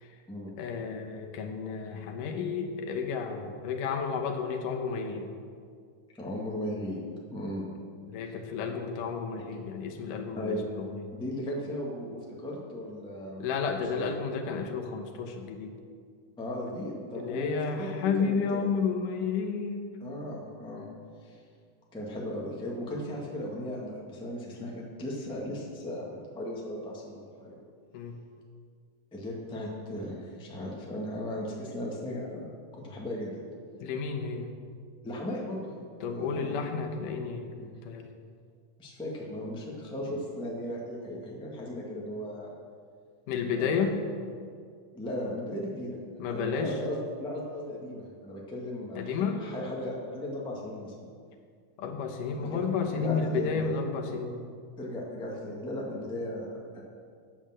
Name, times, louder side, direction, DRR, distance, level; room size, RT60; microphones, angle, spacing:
voice 1, 0.6-5.3 8.1-11.1 13.4-15.7 17.1-19.8 27.9-28.1 33.8-34.5 36.0-38.1 43.3-44.0 46.2-46.7 49.0-49.4 51.8-54.3, left 5 dB, 85° left, 3 dB, 2.6 m, -31 dB
voice 2, 6.2-7.0 7.3-7.7 9.4-9.5 10.3-10.6 11.1-13.5 13.9-14.1 16.4-18.7 20.0-20.9 21.2-21.4 21.9-27.6 29.1-33.4 35.0-35.7 36.0-36.6 37.6-37.7 38.8-42.5 43.5-43.8 44.9-46.0 46.3-51.1 52.4-52.6 52.9-53.7 54.8-56.8, left 1 dB, 5° left, -3 dB, 0.8 m, -36 dB
8.8 x 8.4 x 7.5 m, 2.1 s
omnidirectional pair, 3.7 m